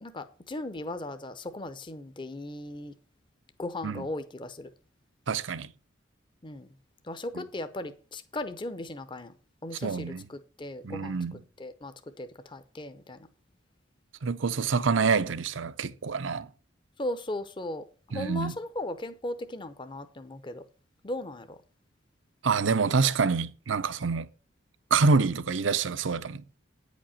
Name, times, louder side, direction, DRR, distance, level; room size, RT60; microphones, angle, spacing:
voice 1, 0.0-2.9 3.6-4.7 6.4-6.7 7.1-9.3 9.6-11.2 11.6-13.2 17.0-20.6 21.0-21.6, left 1 dB, 25° left, 0.7 m, -37 dB
voice 2, 5.3-5.7 7.3-7.4 9.8-10.3 10.8-11.4 14.2-16.5 18.1-18.5 22.4-24.3 24.9-26.4, right 4 dB, 70° right, 0.6 m, -26 dB
9.3 x 5.2 x 7.1 m
head